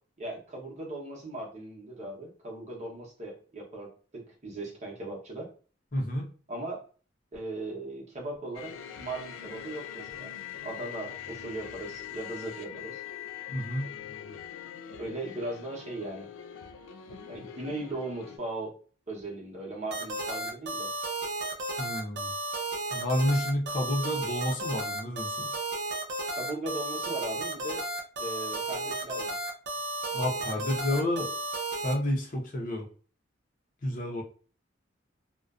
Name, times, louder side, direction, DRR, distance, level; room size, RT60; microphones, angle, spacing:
voice 1, 0.2-5.5 6.5-6.8 7.3-10.3 10.6-13.0 15.0-16.3 17.3-18.7 19.1-20.9 26.3-27.8 28.2-29.3 30.9-31.0, right 2 dB, 35° right, -2 dB, 0.8 m, -38 dB
voice 2, 5.9-6.3 13.5-13.9 21.8-22.3 22.9-25.5 30.1-31.3 31.8-32.9 33.8-34.2, left 1 dB, 45° left, 0 dB, 0.6 m, -30 dB
sound 1, 8.5-18.4, left 9 dB, 85° left, 0.3 m, -43 dB
sound 2, 19.9-31.9, right 2 dB, 60° right, 0.5 m, -33 dB
2.4 x 2.1 x 2.4 m, 0.39 s
head